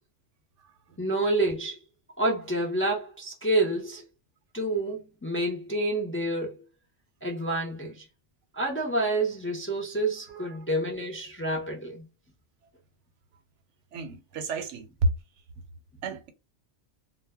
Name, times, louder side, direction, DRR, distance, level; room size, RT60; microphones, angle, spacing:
voice 1, 1.0-1.8 2.2-4.0 4.5-6.5 7.2-8.0 8.5-12.0, right 1 dB, 20° left, 0.4 m, -28 dB
voice 2, 10.3-10.6 13.9-14.9 16.0-16.3, right 7 dB, 85° right, 0.9 m, -37 dB
2.1 x 2.1 x 3.4 m
omnidirectional pair, 1.2 m